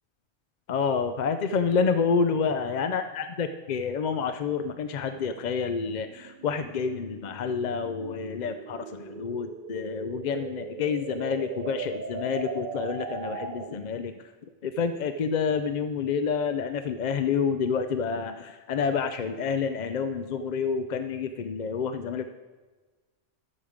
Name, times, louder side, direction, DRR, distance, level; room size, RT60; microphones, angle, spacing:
voice 1, 0.7-14.1 14.6-22.3, left 5 dB, 55° left, 9 dB, 0.5 m, -28 dB
sound 1, 2.6-13.9, right 5 dB, 50° right, 0.8 m, -40 dB
12.5 x 7.4 x 5.0 m, 1.3 s
omnidirectional pair, 1.2 m